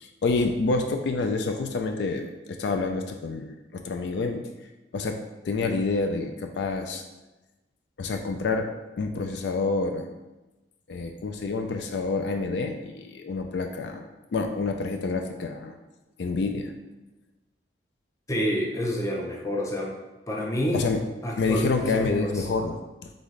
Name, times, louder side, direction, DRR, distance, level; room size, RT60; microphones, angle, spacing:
voice 1, 0.0-4.4 4.9-5.2 5.4-7.0 8.0-8.7 9.0-10.1 10.9-15.7 16.2-16.7 20.7-21.0 21.4-23.1, left 3 dB, 70° left, 4 dB, 0.3 m, -28 dB
voice 2, 18.3-19.9 20.3-20.8 21.2-22.5, equal, 15° left, -1 dB, 0.6 m, -28 dB
4.0 x 3.5 x 3.2 m, 1.1 s
head